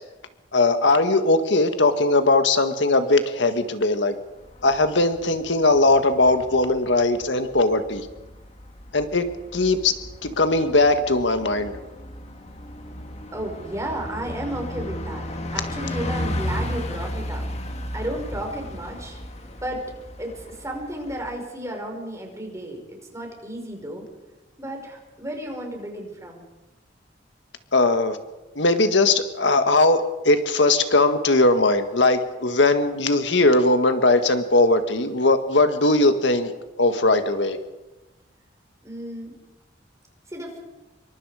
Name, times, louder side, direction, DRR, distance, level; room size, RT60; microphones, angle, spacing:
voice 1, 0.5-4.1 4.6-8.1 8.9-9.3 9.5-9.9 10.2-11.8 27.7-28.2 28.5-36.5 36.8-37.6, left 2 dB, 75° left, 8 dB, 1.7 m, -19 dB
Bus, 4.3-21.4, left 1 dB, 35° left, 2.0 m, -35 dB
voice 2, 13.3-15.2 15.5-17.5 17.9-19.2 19.6-19.8 20.2-24.1 24.6-26.4 38.8-39.3 40.3-40.6, right 1 dB, 15° right, 1 dB, 5.3 m, -33 dB
26.5 x 24.0 x 5.0 m, 1.1 s
head